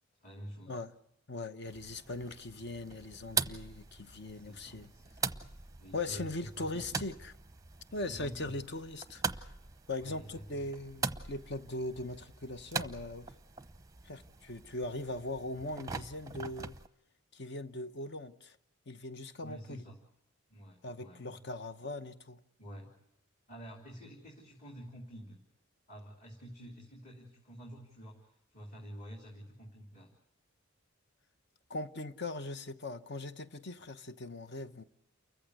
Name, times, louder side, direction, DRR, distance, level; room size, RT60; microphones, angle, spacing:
voice 1, 0.2-0.8 4.3-6.9 7.9-8.6 10.0-10.6 19.4-20.0 20.5-21.4 22.6-22.9 23.5-25.4 25.9-30.1, equal, 35° left, 3.2 m, -49 dB
voice 2, 1.3-4.9 5.9-7.4 7.9-9.5 9.9-13.3 14.0-16.8 17.3-18.6 18.9-19.8 20.8-22.4 31.7-34.8, left 2 dB, 50° left, 1.0 m, -40 dB
sound 1, 1.7-16.9, right 5 dB, 15° right, 0.8 m, -42 dB
29.0 x 15.0 x 8.1 m
head